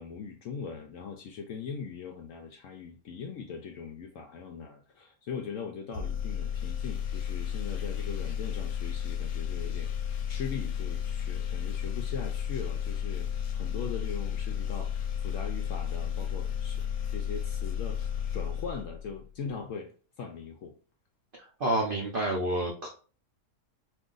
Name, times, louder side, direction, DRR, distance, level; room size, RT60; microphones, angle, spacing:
voice 1, 0.0-16.8 17.1-19.9 20.2-20.7, left 6 dB, 70° left, 0.7 m, -40 dB
sound 1, 5.9-19.3, left 8 dB, 90° left, 1.2 m, -33 dB
voice 2, 21.6-22.9, right 1 dB, 75° right, 0.5 m, -28 dB
2.6 x 2.5 x 3.7 m
omnidirectional pair, 1.7 m